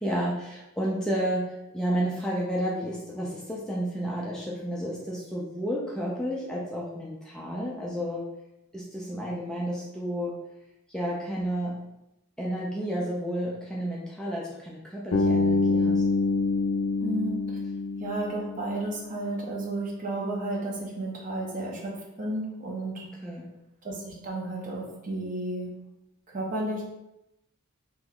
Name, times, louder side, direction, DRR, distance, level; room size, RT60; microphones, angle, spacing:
voice 1, 0.0-8.2 8.7-10.3 10.9-11.8 12.4-16.0 23.2-23.5, equal, 5° left, -5 dB, 0.4 m, -31 dB
Bass guitar, 15.1-19.1, left 3 dB, 75° left, 0.4 m, -26 dB
voice 2, 17.0-17.4 18.0-21.9 22.2-23.1 23.8-25.7 26.3-26.8, right 2 dB, 40° right, -2 dB, 0.7 m, -32 dB
2.9 x 2.2 x 3.5 m, 0.89 s
head